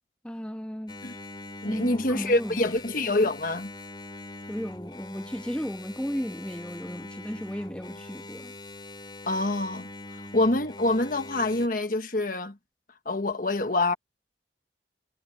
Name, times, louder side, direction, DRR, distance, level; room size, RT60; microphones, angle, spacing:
voice 1, 0.2-1.0 1.7-2.6 4.5-8.5, equal, 5° left, 1.4 m, -34 dB
Engine, 0.9-11.7, left 2 dB, 25° left, 3.5 m, -43 dB
voice 2, 1.6-3.7 9.3-12.6 13.0-13.9, left 2 dB, 50° left, 1.5 m, -26 dB
head